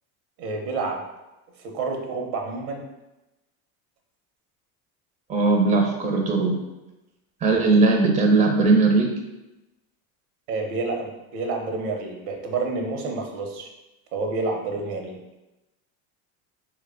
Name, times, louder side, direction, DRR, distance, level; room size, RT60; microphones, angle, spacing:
voice 1, 0.4-1.0 1.6-2.9 10.5-13.7 14.1-15.2, right 3 dB, 80° right, 2 dB, 0.8 m, -29 dB
voice 2, 5.3-6.6 7.4-9.1, right 3 dB, 15° right, 1 dB, 0.5 m, -19 dB
3.1 x 2.2 x 3.6 m, 1.0 s
supercardioid pair, 95°, 43 cm